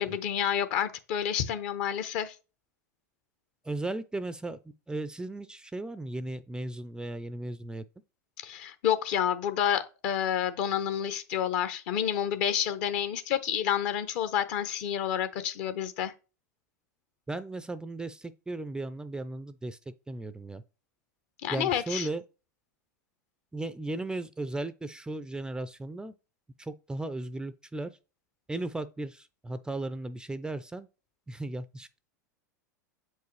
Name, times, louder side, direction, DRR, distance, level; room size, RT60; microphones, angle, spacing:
voice 1, 0.0-2.3 8.4-16.1 21.4-22.1, left 9 dB, 55° left, 0.8 m, -29 dB
voice 2, 3.6-4.6 4.9-7.8 17.3-19.8 20.1-20.6 21.5-22.2 23.5-26.1 26.6-27.9 28.5-30.9 31.3-31.9, right 2 dB, 10° right, 0.4 m, -36 dB
7.9 x 4.7 x 3.2 m
hypercardioid pair, 95°, 10 cm